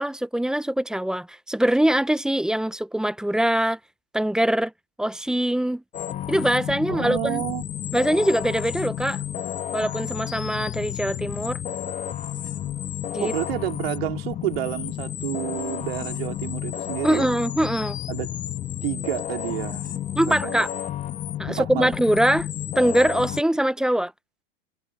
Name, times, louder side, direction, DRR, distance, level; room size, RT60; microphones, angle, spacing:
voice 1, 0.0-3.8 4.1-4.7 5.0-5.8 6.3-7.4 7.9-9.2 9.7-11.6 13.1-13.3 17.0-18.0 20.2-20.7 21.4-22.5 22.8-24.1, right 1 dB, ahead, 0.6 m, -23 dB
sound 1, 5.9-23.4, left 11 dB, 25° left, 1.5 m, -31 dB
voice 2, 6.9-7.6 13.2-17.3 18.1-18.4 18.8-20.5 21.5-21.9, right 15 dB, 75° right, 3.7 m, -30 dB
supercardioid pair, 130°, 30 cm